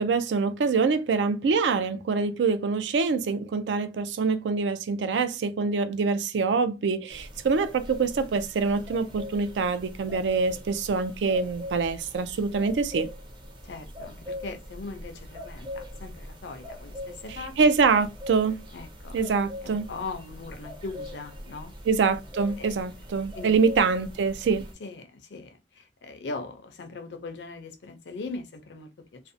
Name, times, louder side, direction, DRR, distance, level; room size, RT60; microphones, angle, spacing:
voice 1, 0.0-13.1 17.3-18.6 19.1-19.9 21.9-24.7, right 4 dB, 75° right, 0.4 m, -25 dB
sound 1, 7.1-24.7, left 1 dB, 25° right, 0.6 m, -42 dB
voice 2, 13.6-17.5 18.7-19.2 19.6-21.7 22.6-22.7 23.3-23.5 24.8-29.2, left 3 dB, 70° left, 0.5 m, -40 dB
2.5 x 2.1 x 2.5 m
head